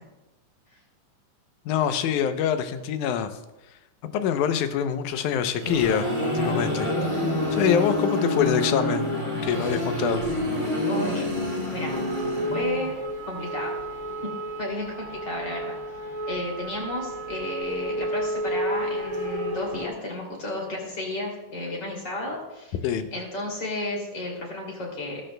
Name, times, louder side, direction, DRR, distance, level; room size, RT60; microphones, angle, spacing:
voice 1, 1.7-3.3 4.1-10.2 22.8-23.1, left 8 dB, 85° left, 9 dB, 2.2 m, -25 dB
sound 1, 5.3-13.0, left 1 dB, 10° left, 2.5 m, -27 dB
voice 2, 10.9-11.3 11.7-11.9 12.5-12.9 13.3-13.8 14.6-15.8 16.3-25.2, left 1 dB, 35° left, -1 dB, 3.2 m, -32 dB
sound 2, 11.9-19.9, right 1 dB, 85° right, 0.6 m, -31 dB
14.5 x 13.0 x 2.2 m, 1.0 s
omnidirectional pair, 3.5 m